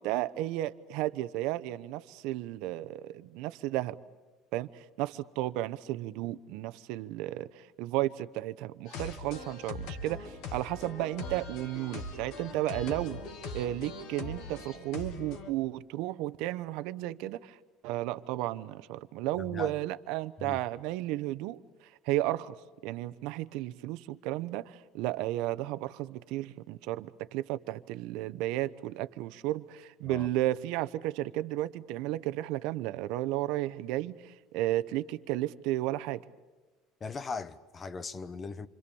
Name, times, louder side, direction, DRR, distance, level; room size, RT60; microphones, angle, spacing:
voice 1, 0.0-4.0 4.5-13.2 13.5-17.6 17.8-21.6 22.0-22.5 22.8-36.2, right 15 dB, 70° right, 0.9 m, -33 dB
sound 1, 8.9-15.5, left 2 dB, 70° left, 2.6 m, -41 dB
voice 2, 19.4-19.8 20.4-20.6 30.0-30.3 37.0-38.7, left 4 dB, 25° left, 0.9 m, -39 dB
28.0 x 25.5 x 7.1 m
cardioid pair, 150°, 0 cm